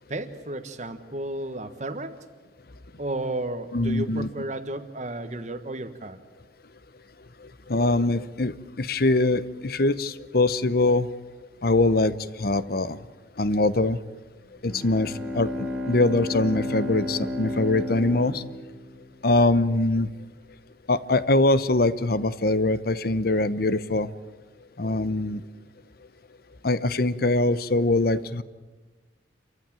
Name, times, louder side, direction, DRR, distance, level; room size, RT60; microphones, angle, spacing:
voice 1, 0.1-2.2 3.0-6.2, right 2 dB, 40° right, 9 dB, 1.4 m, -33 dB
voice 2, 3.7-4.3 7.7-11.1 11.6-13.0 13.4-14.0 14.6-18.4 19.2-20.1 20.9-24.1 24.8-25.4 26.6-28.4, left 2 dB, 55° left, 14 dB, 0.9 m, -23 dB
Bowed string instrument, 14.7-19.3, left 1 dB, 5° right, 2.3 m, -32 dB
29.0 x 14.5 x 8.9 m, 1.3 s
head